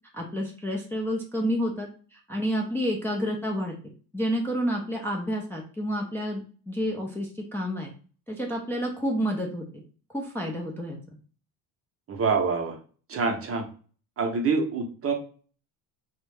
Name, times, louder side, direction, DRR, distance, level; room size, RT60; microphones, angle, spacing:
voice 1, 0.1-3.7 4.1-7.9 8.3-9.6 10.1-11.0, equal, 5° left, -1 dB, 0.4 m, -29 dB
voice 2, 12.1-12.8 13.1-13.7 14.2-15.1, right 4 dB, 35° right, 3 dB, 0.7 m, -26 dB
2.3 x 2.1 x 3.3 m, 0.39 s
supercardioid pair, 95°, 39 cm